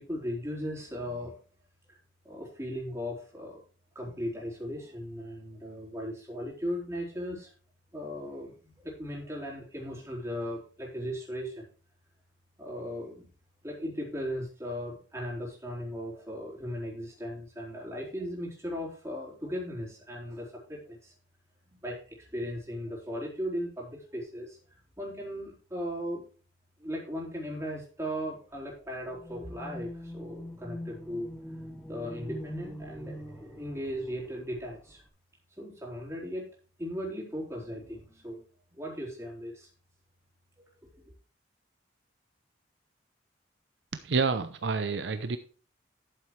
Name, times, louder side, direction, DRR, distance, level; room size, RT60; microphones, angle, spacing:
voice 1, 0.0-1.3 1.9-2.0 2.2-3.6 3.9-7.5 7.9-11.6 12.6-13.3 13.6-21.1 21.7-24.6 25.0-26.2 26.8-31.3 31.9-35.0 35.6-36.4 36.8-38.4 38.7-39.7 40.6-41.0, equal, 15° right, -4 dB, 3.9 m, -37 dB
sound 1, 29.1-35.1, equal, 5° left, 1.3 m, -43 dB
voice 2, 44.0-45.4, right 4 dB, 65° right, 10 dB, 0.6 m, -28 dB
12.0 x 7.5 x 3.3 m, 0.40 s
head